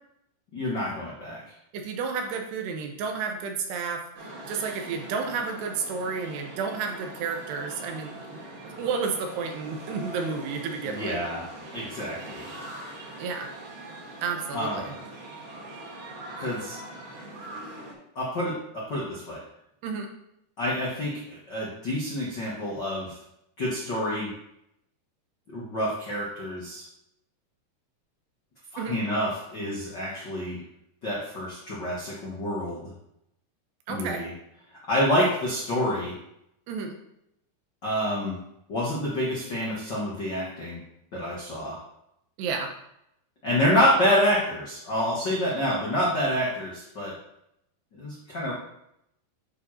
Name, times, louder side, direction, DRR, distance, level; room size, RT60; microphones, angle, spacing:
voice 1, 0.5-1.4 10.8-11.5 11.7-12.5 14.5-15.0 16.4-16.8 18.1-19.4 20.6-23.2 23.6-24.3 25.5-26.8 28.7-30.6 31.0-32.9 33.9-34.3 34.9-36.2 37.8-38.4 38.7-40.8 41.1-41.8 43.4-47.1 47.9-48.5, left 1 dB, 90° left, -6 dB, 0.9 m, -27 dB
voice 2, 1.7-4.0 4.5-8.4 8.8-11.2 13.2-13.5 14.2-14.9 19.8-20.1 28.8-29.0 33.9-34.2 36.7-37.0 42.4-42.7, right 5 dB, 75° right, 3 dB, 3.0 m, -31 dB
sound 1, 4.1-17.9, right 1 dB, 55° right, 3.2 m, -42 dB
9.6 x 4.8 x 4.4 m, 0.79 s
omnidirectional pair, 4.9 m